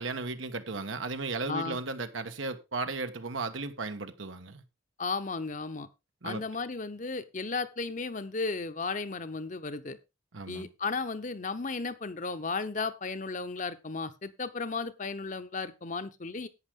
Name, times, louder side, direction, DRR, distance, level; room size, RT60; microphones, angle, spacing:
voice 1, 0.0-4.6 6.2-6.4 10.3-10.7, right 3 dB, 80° right, 1.3 m, -35 dB
voice 2, 1.5-1.8 5.0-5.9 6.2-10.0 10.5-16.5, left 4 dB, 40° left, 0.9 m, -34 dB
11.0 x 9.2 x 3.7 m
head